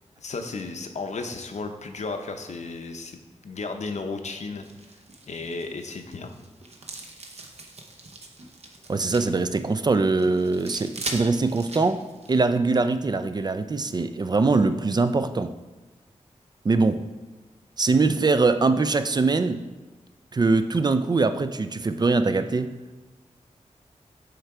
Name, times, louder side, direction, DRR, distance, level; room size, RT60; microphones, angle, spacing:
voice 1, 0.2-4.7 5.3-6.3, left 3 dB, 70° left, 6 dB, 0.7 m, -34 dB
sound 1, 4.6-12.4, right 2 dB, 55° right, 0.8 m, -41 dB
voice 2, 8.9-15.5 16.6-17.1 17.8-19.7 20.3-22.8, right 3 dB, 35° right, 11 dB, 0.3 m, -22 dB
7.8 x 3.3 x 4.8 m, 1.1 s
wide cardioid pair, 90°, 13 cm